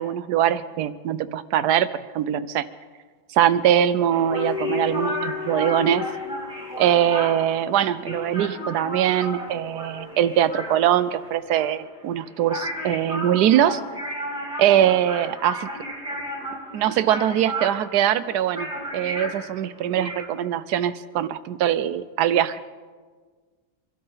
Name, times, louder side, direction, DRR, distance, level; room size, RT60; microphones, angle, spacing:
voice 1, 0.0-2.7 3.3-6.1 6.8-13.8 14.6-15.7 16.7-18.7 18.9-22.6, right 10 dB, 75° right, 14 dB, 1.2 m, -22 dB
sound 1, 4.1-20.3, right 1 dB, 5° right, 2.2 m, -34 dB
sound 2, 4.3-11.1 11.3-11.6, left 6 dB, 80° left, 1.4 m, -35 dB
24.5 x 12.5 x 3.9 m, 1.5 s
omnidirectional pair, 1.8 m